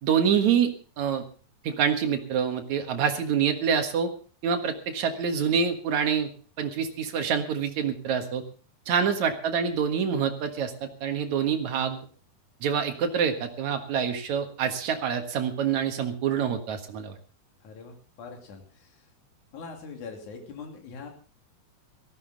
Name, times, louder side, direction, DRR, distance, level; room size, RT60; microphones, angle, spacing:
voice 1, 0.0-1.2 1.6-4.1 4.4-6.3 6.6-8.4 8.9-12.0 12.6-17.1, right 7 dB, 55° right, 6 dB, 2.6 m, -26 dB
voice 2, 17.6-19.1 19.5-21.1, left 5 dB, 55° left, 2 dB, 4.0 m, -42 dB
18.0 x 14.5 x 4.0 m, 0.37 s
omnidirectional pair, 4.3 m